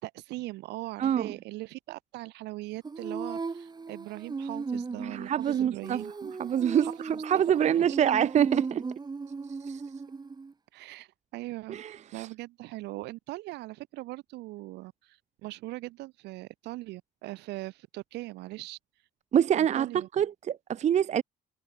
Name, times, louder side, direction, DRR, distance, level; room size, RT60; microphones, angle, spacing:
voice 1, 0.0-6.1 6.8-8.0 10.7-18.8 19.6-20.1, right 19 dB, 85° right, 4.2 m, -40 dB
voice 2, 1.0-1.3 5.1-6.9 7.2-8.8 9.7-9.8 11.7-12.3 19.3-21.2, right 9 dB, 45° right, 0.7 m, -26 dB
Female singing, 2.8-10.5, right 4 dB, 25° right, 4.6 m, -37 dB
cardioid pair, 110°, 17 cm